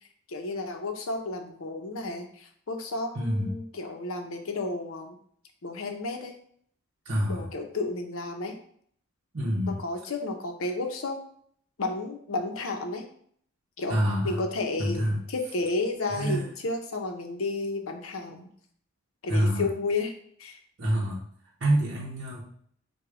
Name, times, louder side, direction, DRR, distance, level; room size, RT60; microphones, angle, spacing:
voice 1, 0.3-5.2 5.6-6.3 7.3-8.6 9.7-11.2 11.8-13.1 13.8-18.5 19.2-20.6, left 3 dB, 90° left, 4 dB, 0.7 m, -32 dB
voice 2, 3.1-3.5 7.0-7.5 9.3-9.8 13.9-14.4 14.8-15.2 16.1-16.5 19.3-19.6 20.8-21.2 21.6-22.4, equal, 60° right, -6 dB, 0.9 m, -26 dB
4.8 x 2.3 x 4.8 m, 0.62 s
head